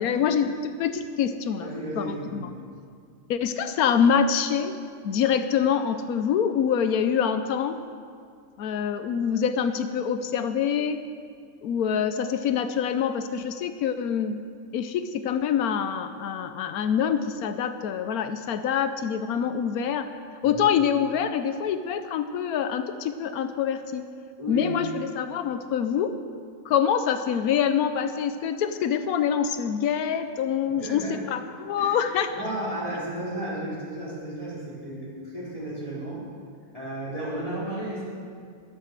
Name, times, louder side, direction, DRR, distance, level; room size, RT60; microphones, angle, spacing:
voice 1, 0.0-1.7 2.0-2.5 3.3-4.7 5.0-7.8 8.6-11.0 11.6-14.4 14.7-20.1 20.4-24.1 24.5-26.2 26.6-32.3, left 8 dB, 85° left, 9 dB, 1.2 m, -25 dB
voice 2, 1.6-2.5 20.4-20.6 24.4-24.8 30.7-31.2 31.8-32.0 32.3-36.2 36.7-38.0, right 1 dB, 25° left, -7 dB, 4.8 m, -33 dB
13.0 x 11.5 x 7.4 m, 2.2 s
omnidirectional pair, 1.5 m